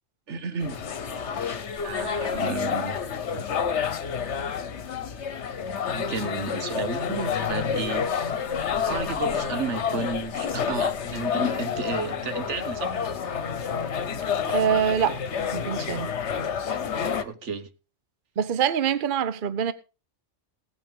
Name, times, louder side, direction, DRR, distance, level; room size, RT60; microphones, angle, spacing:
voice 1, 0.3-0.8 1.8-3.0 5.9-8.4 8.7-13.0 17.0-17.7, right 4 dB, 80° right, 1.4 m, -33 dB
sound 1, 0.6-17.2, left 7 dB, 75° left, 1.2 m, -29 dB
voice 2, 14.5-15.2 15.5-16.1 18.4-19.7, right 8 dB, 50° right, 0.8 m, -24 dB
17.0 x 9.0 x 3.6 m
omnidirectional pair, 1.2 m